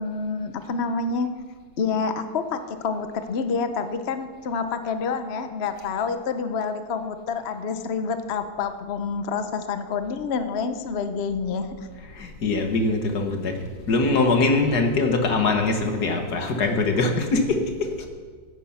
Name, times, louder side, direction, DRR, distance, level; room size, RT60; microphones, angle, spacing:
voice 1, 0.0-1.3 1.8-11.9, left 5 dB, 65° left, 9 dB, 0.6 m, -28 dB
voice 2, 12.2-13.6 13.9-17.6 18.0-18.1, left 3 dB, 50° left, 4 dB, 1.9 m, -22 dB
16.0 x 9.2 x 5.9 m, 1.5 s
omnidirectional pair, 2.3 m